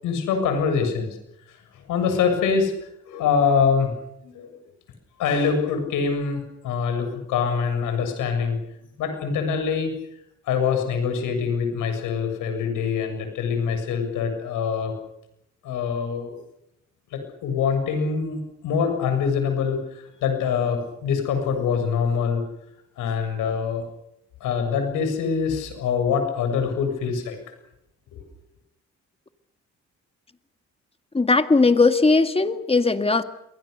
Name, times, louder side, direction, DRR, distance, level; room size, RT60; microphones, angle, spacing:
voice 1, 0.0-1.1 1.5-2.7 3.1-3.9 4.2-4.5 5.2-8.6 9.0-9.9 10.5-14.9 15.6-16.3 17.1-22.4 23.0-23.8 24.4-27.4 28.1-28.2, left 6 dB, 90° left, 6 dB, 7.2 m, -24 dB
voice 2, 31.1-33.2, left 3 dB, 20° left, 9 dB, 2.0 m, -18 dB
28.0 x 22.5 x 6.7 m, 0.80 s
cardioid pair, 90°, 30 cm